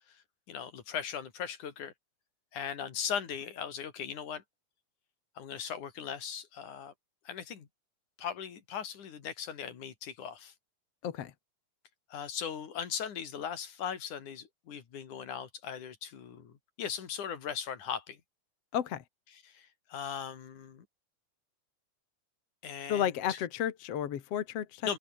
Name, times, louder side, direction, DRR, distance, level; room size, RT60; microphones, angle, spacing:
voice 1, 0.5-1.9 2.5-4.4 5.4-6.9 7.3-7.7 8.2-10.5 12.1-18.2 19.3-20.9 22.6-23.4 24.8-25.0, left 8 dB, 70° left, 3.9 m, -39 dB
voice 2, 18.7-19.0 22.9-25.0, left 9 dB, 55° left, 2.3 m, -32 dB
open air
omnidirectional pair, 3.7 m